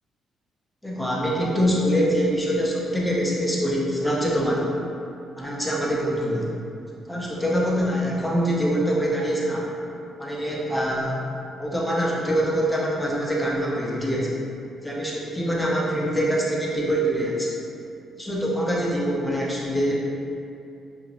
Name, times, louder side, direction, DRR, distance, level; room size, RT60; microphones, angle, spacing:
voice 1, 0.8-4.7 5.4-6.5 7.1-9.7 10.2-11.2 11.6-14.3 14.8-17.5 18.2-20.0, equal, 5° left, -5 dB, 0.6 m, -24 dB
2.8 x 2.6 x 2.9 m, 2.6 s
cardioid pair, 90°, 0 cm